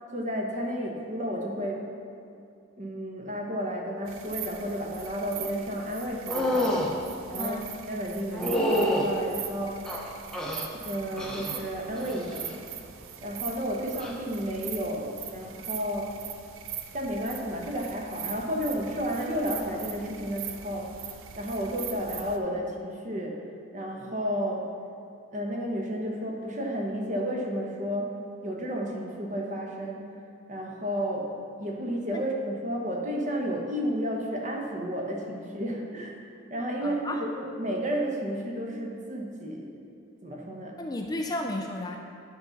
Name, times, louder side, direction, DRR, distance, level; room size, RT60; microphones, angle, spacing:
voice 1, 0.1-1.8 2.8-6.8 7.3-7.6 7.8-9.8 10.7-12.6 13.2-16.2 16.9-20.9 21.4-23.4 23.7-24.6 25.3-28.1 28.4-30.2 30.5-31.3 31.6-36.2 36.5-39.7 40.2-40.7, equal, 40° right, 0 dB, 1.0 m, -32 dB
sound 1, 4.1-22.4, right 9 dB, 90° right, 0.5 m, -41 dB
sound 2, 6.3-6.9 8.3-9.1 9.8-10.7 11.2-11.6 11.9-12.4 13.9-14.1, left 1 dB, 5° left, 0.8 m, -27 dB
voice 2, 7.4-7.7 32.1-32.2 36.8-37.3 40.8-42.0, left 1 dB, 20° left, 3 dB, 0.4 m, -33 dB
9.7 x 5.7 x 4.0 m, 2.4 s
head